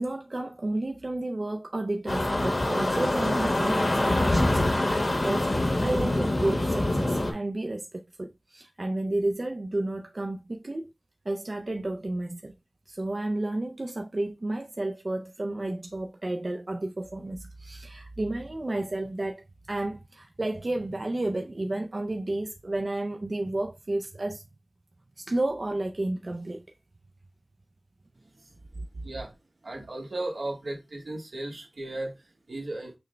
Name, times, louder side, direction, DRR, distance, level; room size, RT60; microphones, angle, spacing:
voice 1, 0.0-4.9 5.2-10.9 11.3-12.5 12.9-24.4 25.2-26.7 28.8-28.9, right 2 dB, 55° right, 0.4 m, -32 dB
sound 1, 2.1-7.3, left 1 dB, 65° left, 1.1 m, -25 dB
voice 2, 29.0-29.3 29.6-32.9, right 2 dB, 85° right, 1.2 m, -36 dB
6.0 x 2.2 x 3.2 m
wide cardioid pair, 45°, 0 cm